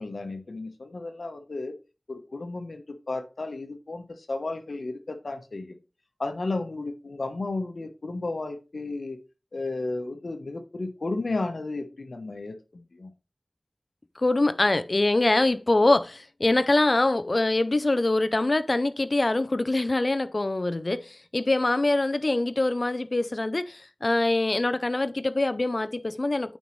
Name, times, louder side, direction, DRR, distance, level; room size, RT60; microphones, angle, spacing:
voice 1, 0.0-1.7 2.1-5.8 6.2-9.2 9.5-13.1, left 2 dB, 85° left, 1.0 m, -33 dB
voice 2, 14.2-26.6, left 2 dB, 55° left, 0.5 m, -24 dB
9.1 x 5.4 x 3.1 m
wide cardioid pair, 50°, 0 cm